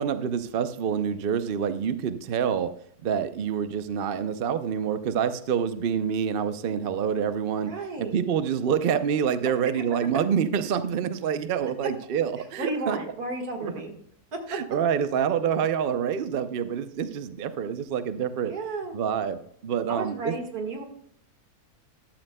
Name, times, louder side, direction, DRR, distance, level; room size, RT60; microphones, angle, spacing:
voice 1, 0.0-2.7 3.0-7.7 8.1-13.0 13.6-13.7 14.5-18.5 18.9-20.3, right 7 dB, 55° right, 11 dB, 0.6 m, -27 dB
voice 2, 7.6-8.2 9.8-9.9 12.4-13.9 14.3-14.6 18.5-19.0 19.9-20.8, right 3 dB, 75° right, 3 dB, 2.2 m, -33 dB
13.5 x 11.5 x 2.2 m, 0.65 s
omnidirectional pair, 1.6 m